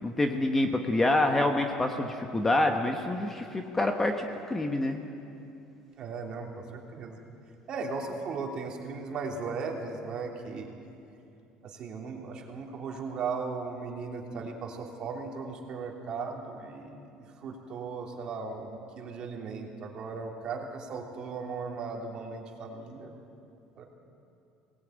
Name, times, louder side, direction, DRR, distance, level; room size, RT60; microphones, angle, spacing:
voice 1, 0.0-5.0, left 2 dB, 10° left, 4 dB, 1.1 m, -27 dB
voice 2, 6.0-7.2 7.7-10.7 11.6-23.1 23.8-23.9, right 4 dB, 35° right, 1 dB, 3.0 m, -37 dB
23.0 x 19.0 x 9.3 m, 2.7 s
cardioid pair, 160°, 2 cm